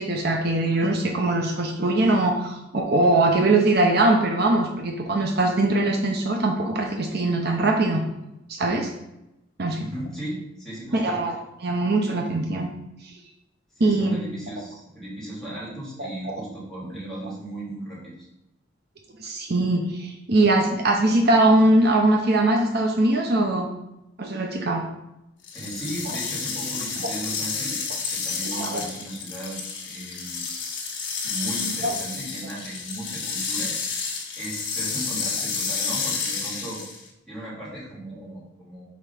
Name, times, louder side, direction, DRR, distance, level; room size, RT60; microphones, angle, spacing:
voice 1, 0.0-8.0 8.5-8.9 9.6-9.8 10.9-11.3 11.6-12.7 13.0-13.1 13.8-14.2 16.0-16.4 19.2-23.7 24.2-24.9 28.6-28.8 31.8-31.9, right 2 dB, 55° right, 2 dB, 0.8 m, -21 dB
voice 2, 9.8-11.2 13.7-18.3 24.3-24.4 25.5-30.4 31.2-33.7 34.4-36.8 37.3-38.8, right 1 dB, 5° left, -8 dB, 2.8 m, -36 dB
sound 1, 25.4-37.1, left 5 dB, 65° left, 1.4 m, -30 dB
5.1 x 4.7 x 5.7 m, 0.89 s
head